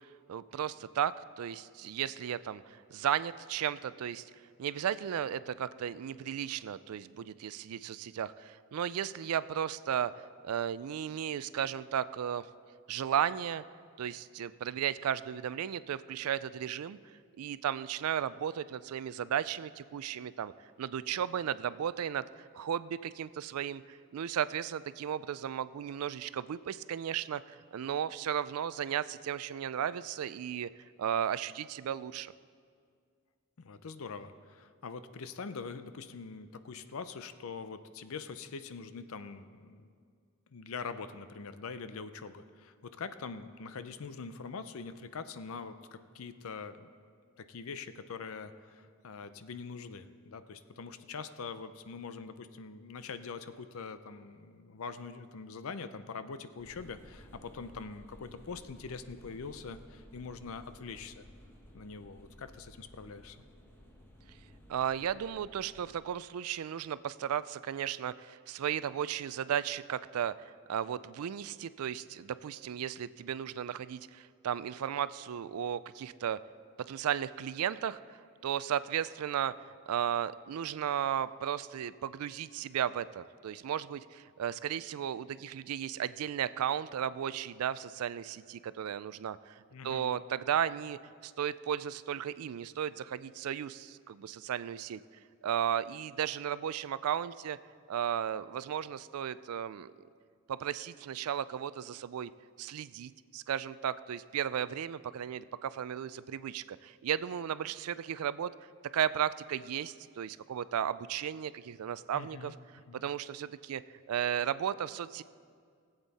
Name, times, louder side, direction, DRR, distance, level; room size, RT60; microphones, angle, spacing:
voice 1, 0.3-4.3 4.6-10.1 10.4-12.5 12.9-13.6 14.0-17.0 17.4-20.5 20.8-22.3 22.5-27.4 27.7-30.7 31.0-32.3 64.7-76.4 76.8-78.2 78.4-79.5 79.9-89.6 89.8-95.0 95.4-97.6 97.9-99.9 100.5-102.3 102.6-108.5 108.9-112.5 112.9-113.8 114.1-115.2, right 9 dB, 85° right, 17 dB, 0.3 m, -34 dB
voice 2, 33.6-39.9 40.5-46.9 47.4-61.3 61.7-63.4 89.7-90.1 112.1-112.5 112.9-113.0, left 5 dB, 75° left, 11 dB, 0.5 m, -43 dB
sound 1, 56.6-66.0, equal, 10° left, 1.0 m, -55 dB
18.0 x 8.1 x 4.1 m, 2.1 s
head